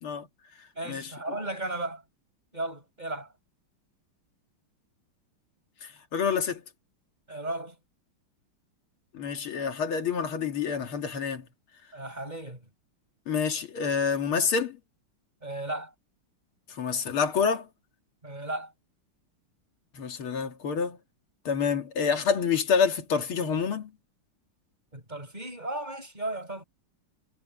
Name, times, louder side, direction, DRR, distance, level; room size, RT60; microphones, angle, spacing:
voice 1, 0.7-2.0 2.5-3.3 7.3-7.7 11.9-12.7 15.4-15.9 18.2-18.7 24.9-26.6, right 2 dB, 20° right, 6.8 m, -35 dB
voice 2, 5.8-6.6 9.1-11.4 13.3-14.8 16.7-17.7 19.9-21.0 21.5-23.9, left 6 dB, 80° left, 2.7 m, -27 dB
omnidirectional pair, 2.3 m